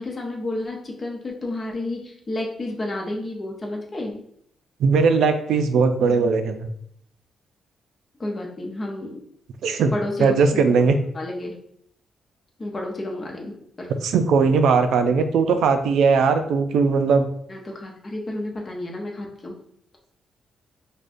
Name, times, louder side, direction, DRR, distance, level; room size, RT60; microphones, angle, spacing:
voice 1, 0.0-4.2 8.2-9.2 9.9-10.9 11.1-11.5 12.6-13.9 17.5-19.5, left 1 dB, 25° left, 0 dB, 0.6 m, -31 dB
voice 2, 4.8-6.7 9.6-9.9 10.2-11.0 14.0-17.3, right 5 dB, 85° right, 8 dB, 0.3 m, -19 dB
4.9 x 2.2 x 2.5 m, 0.69 s
cardioid pair, 155°, 0 cm